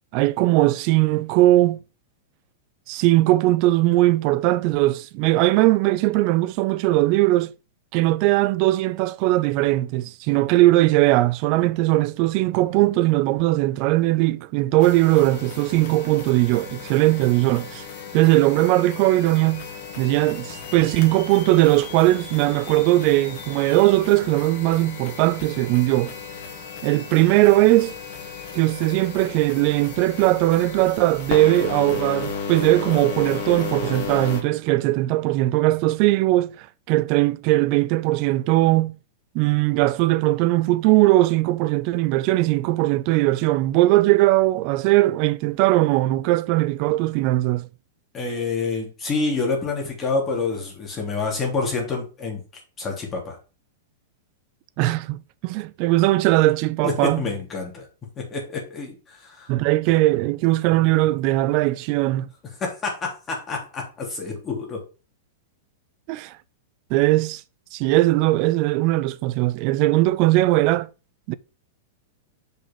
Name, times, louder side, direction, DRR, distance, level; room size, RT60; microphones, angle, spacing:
voice 1, 0.1-1.8 2.9-7.5 7.9-17.9 18.1-19.7 20.0-26.1 26.8-27.9 28.5-38.9 39.3-47.7 54.8-57.2 59.5-62.3 66.1-66.3 66.9-67.4 67.7-70.9 71.3-71.4, right 17 dB, 45° right, 0.5 m, -19 dB
sound 1, 14.8-34.4, left 5 dB, 50° left, 2.2 m, -35 dB
voice 2, 48.1-52.4 52.8-53.4 56.8-57.9 58.2-59.5 62.6-64.8, left 4 dB, 25° left, 3.5 m, -27 dB
6.2 x 5.3 x 5.5 m
figure-of-eight pair, 100°, 0 cm